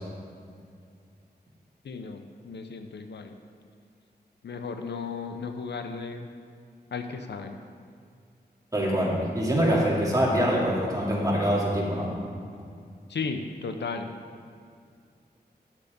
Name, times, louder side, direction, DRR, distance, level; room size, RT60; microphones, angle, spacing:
voice 1, 1.8-3.4 4.4-6.3 6.9-7.6 13.1-14.1, left 4 dB, 90° left, 6 dB, 0.7 m, -35 dB
voice 2, 8.7-12.1, equal, 20° right, -5 dB, 2.7 m, -24 dB
11.0 x 6.7 x 5.2 m, 2.2 s
wide cardioid pair, 75°, 17 cm